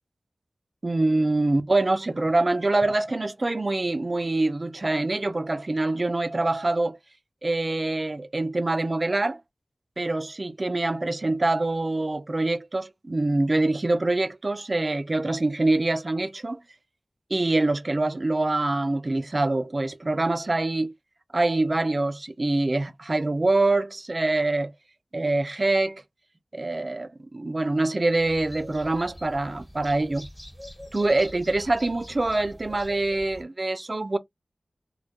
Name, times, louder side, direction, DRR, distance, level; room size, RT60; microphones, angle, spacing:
voice 1, 0.8-7.0 7.4-9.4 10.0-16.6 17.3-20.9 21.3-24.7 25.1-26.0 26.5-30.3 30.9-34.2, right 2 dB, 45° right, 0.3 m, -25 dB
sound 1, 28.2-33.4, equal, 15° left, 1.1 m, -44 dB
2.1 x 2.1 x 2.8 m
cardioid pair, 45°, 0 cm